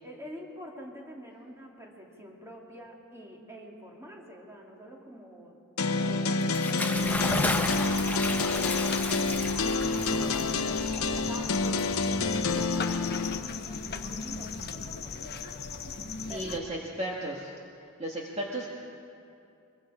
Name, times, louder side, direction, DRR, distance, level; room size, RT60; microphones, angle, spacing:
voice 1, 0.0-5.6 5.9-8.9 10.0-13.4 13.9-15.4 16.3-16.9, equal, 10° right, -1 dB, 2.5 m, -47 dB
sound 1, 5.8-13.4, left 3 dB, 70° left, 0.9 m, -28 dB
Bathtub (filling or washing) / Splash splatter, 6.4-12.4, left 2 dB, 10° left, 1.0 m, -33 dB
sound 2, 7.0-16.6, left 4 dB, 45° left, 1.0 m, -37 dB
voice 2, 16.2-17.5 18.0-18.7, right 1 dB, 30° right, -2 dB, 1.7 m, -34 dB
24.0 x 23.0 x 5.0 m, 2.5 s
head